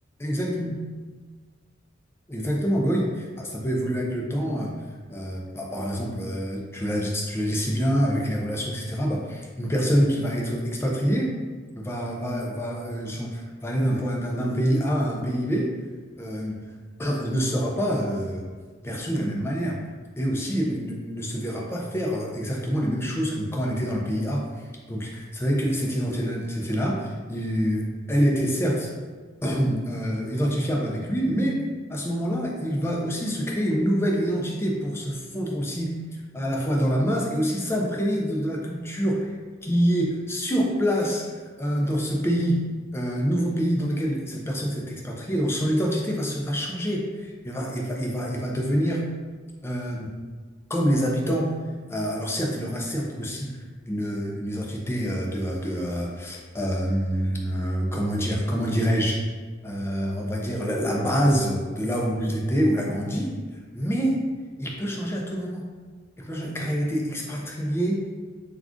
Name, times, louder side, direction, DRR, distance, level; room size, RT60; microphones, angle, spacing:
voice 1, 0.2-0.8 2.3-4.7 5.1-11.4 11.7-15.8 16.2-16.7 17.0-18.4 18.8-19.8 20.2-28.9 29.4-36.0 36.3-39.3 39.6-41.3 41.6-42.6 42.9-49.1 49.6-50.1 50.7-51.5 51.9-53.6 53.9-59.2 59.6-63.4 63.7-64.2 64.6-65.7 66.2-68.1, equal, 15° left, -1 dB, 0.4 m, -26 dB
2.4 x 2.3 x 3.5 m, 1.4 s
head